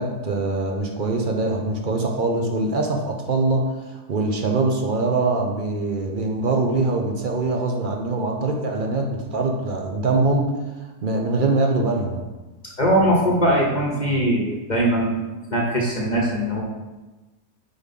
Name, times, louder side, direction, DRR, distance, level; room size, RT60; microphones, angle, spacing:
voice 1, 0.0-10.5 11.0-12.2, right 3 dB, 50° right, 2 dB, 0.6 m, -23 dB
voice 2, 12.8-15.2 15.5-16.6, right 1 dB, 35° left, -3 dB, 0.9 m, -20 dB
4.8 x 4.1 x 5.3 m, 1.1 s
omnidirectional pair, 1.6 m